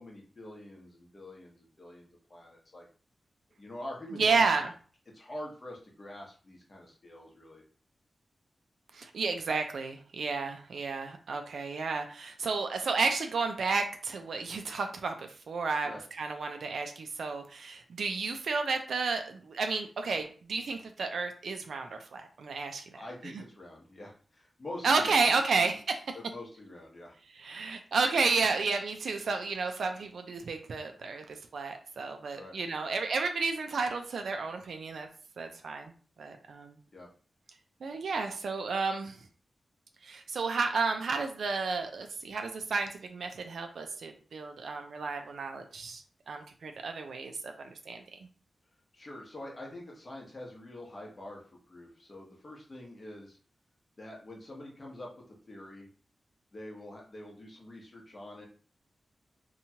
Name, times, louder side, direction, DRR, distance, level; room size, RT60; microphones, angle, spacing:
voice 1, 0.0-2.9 3.6-4.5 5.1-7.6 15.8-16.0 22.9-25.7 26.1-27.2 32.3-32.5 32.8-32.9 36.9-37.1 48.9-53.4 54.0-55.1 55.5-55.9 56.5-58.5, left 1 dB, 35° left, -2 dB, 0.9 m, -45 dB
voice 2, 4.1-4.7 8.9-23.3 24.8-26.0 27.3-35.1 35.4-35.9 36.2-36.8 37.8-39.2 40.0-48.0, right 4 dB, 80° right, 5 dB, 0.3 m, -32 dB
2.9 x 2.2 x 2.8 m, 0.41 s
wide cardioid pair, 125°, 0 cm